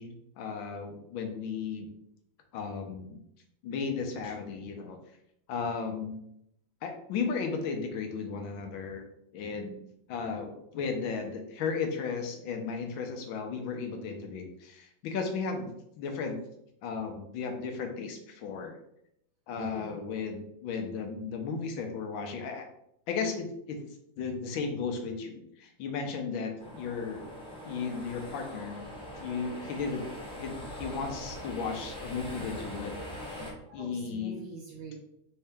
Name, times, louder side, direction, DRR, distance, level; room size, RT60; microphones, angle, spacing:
voice 1, 0.0-1.9 2.5-3.2 3.6-5.0 5.5-6.2 6.8-9.0 9.3-9.8 10.1-16.4 16.8-18.8 19.5-22.7 23.1-23.8 24.2-27.2 27.7-28.9 29.2-30.0 30.4-32.9 33.3-33.4 33.7-34.4, left 5 dB, 80° left, 3 dB, 1.5 m, -35 dB
voice 2, 19.6-20.0 33.4-35.0, right 3 dB, 80° right, -5 dB, 1.8 m, -44 dB
sound 1, 26.6-33.5, equal, 5° left, 0.7 m, -42 dB
5.4 x 2.8 x 3.4 m, 0.76 s
omnidirectional pair, 2.2 m